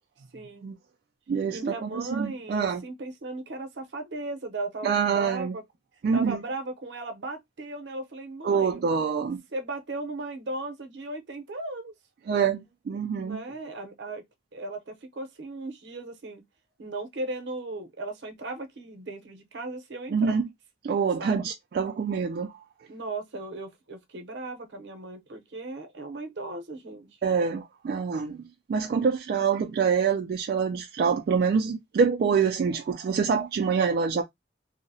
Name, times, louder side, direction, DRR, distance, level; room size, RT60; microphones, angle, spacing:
voice 1, 0.3-0.7 1.5-5.6 6.1-8.8 9.5-11.9 13.2-14.2 14.5-16.4 16.8-20.4 21.2-21.4 22.9-27.1, right 2 dB, 80° right, 0.7 m, -37 dB
voice 2, 1.3-2.8 4.8-5.5 6.0-6.4 8.4-9.4 12.3-13.4 20.1-20.4 20.8-22.5 27.2-34.2, right 6 dB, 55° right, 0.3 m, -26 dB
2.7 x 2.0 x 2.6 m
head